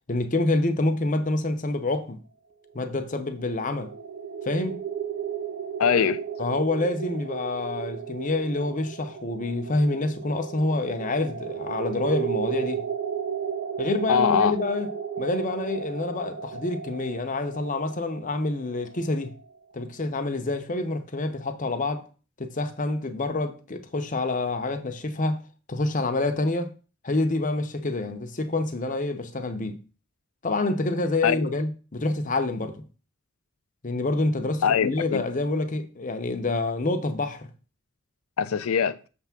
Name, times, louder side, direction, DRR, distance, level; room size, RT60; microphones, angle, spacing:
voice 1, 0.1-2.2 2.7-3.9 4.4-4.8 6.4-12.9 13.8-14.9 15.2-19.3 19.7-22.0 22.4-25.4 25.7-26.7 27.0-29.8 30.4-32.8 33.8-37.5, left 2 dB, 40° left, 0.8 m, -27 dB
sound 1, 2.7-19.6, right 7 dB, 55° right, 0.9 m, -34 dB
voice 2, 5.8-6.2 14.1-14.6 31.2-31.5 34.6-35.2 38.4-39.0, left 7 dB, 85° left, 0.5 m, -22 dB
6.7 x 3.5 x 5.8 m
head